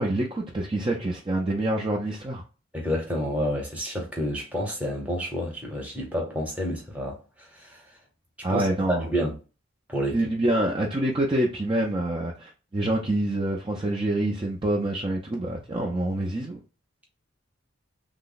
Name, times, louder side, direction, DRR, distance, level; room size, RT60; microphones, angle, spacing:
voice 1, 0.0-2.4 8.4-9.1 10.1-16.6, right 1 dB, 25° right, 0.4 m, -26 dB
voice 2, 2.7-7.8 8.5-8.6 8.9-9.3 9.9-10.2, equal, 5° right, 0.8 m, -29 dB
3.3 x 2.0 x 3.8 m
head